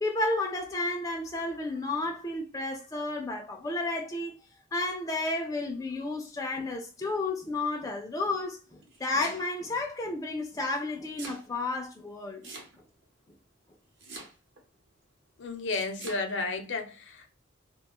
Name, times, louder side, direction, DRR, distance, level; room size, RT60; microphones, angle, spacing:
voice 1, 0.0-4.3 4.7-12.5, left 2 dB, 15° left, 0.3 m, -32 dB
Domestic sounds home sounds, 8.7-9.7 10.7-11.5 12.4-13.0 14.0-14.6 15.7-16.2, right 2 dB, 60° right, 0.8 m, -44 dB
voice 2, 15.4-17.3, left 3 dB, 65° left, 0.6 m, -32 dB
2.4 x 2.2 x 2.8 m
head